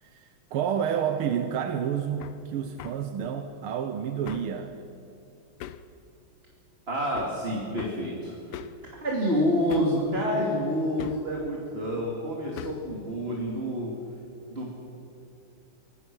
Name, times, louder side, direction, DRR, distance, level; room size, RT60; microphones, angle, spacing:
voice 1, 0.0-4.8, right 8 dB, 80° right, 7 dB, 1.8 m, -30 dB
Hammer, 2.2-2.4 2.8-3.0 4.3-4.5 5.6-5.9 7.2-7.4 7.8-8.0 8.5-8.8 9.7-10.0 11.0-11.3 12.6-12.9, left 10 dB, 90° left, 1.7 m, -40 dB
voice 2, 6.9-8.7 9.0-13.9 14.5-14.7, equal, 25° right, -2 dB, 2.7 m, -28 dB
25.0 x 17.5 x 6.2 m, 2.8 s
omnidirectional pair, 2.4 m